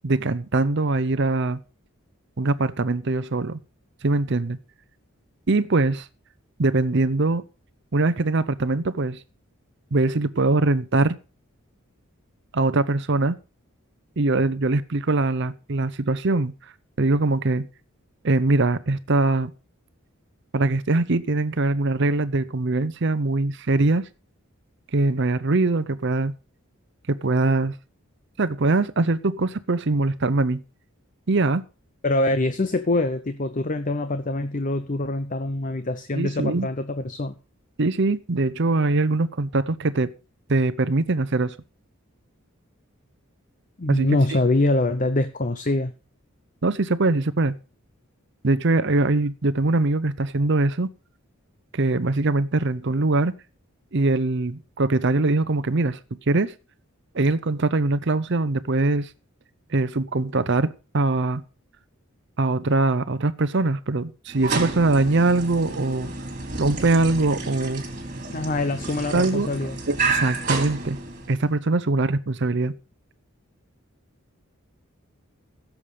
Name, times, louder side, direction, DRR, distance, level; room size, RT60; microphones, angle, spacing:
voice 1, 0.0-1.6 2.4-3.6 4.0-4.6 5.5-6.1 6.6-7.4 7.9-9.2 9.9-11.2 12.5-13.4 14.2-16.5 17.0-17.7 18.2-19.5 20.5-24.1 24.9-26.3 27.1-27.7 28.4-30.6 31.3-31.6 36.1-36.7 37.8-40.1 40.5-41.6 43.9-44.4 46.6-47.5 48.4-50.9 51.7-53.3 53.9-56.0 56.3-56.5 57.1-59.1 59.7-61.4 62.4-66.1 66.6-67.8 69.1-69.5 69.9-71.0 71.3-72.7, right 2 dB, 55° right, 0.7 m, -22 dB
voice 2, 32.0-37.4 43.8-45.9 68.3-69.8, left 2 dB, 40° left, 0.8 m, -24 dB
sound 1, 64.3-71.5, right 3 dB, 35° right, 2.9 m, -30 dB
16.5 x 7.3 x 5.0 m
head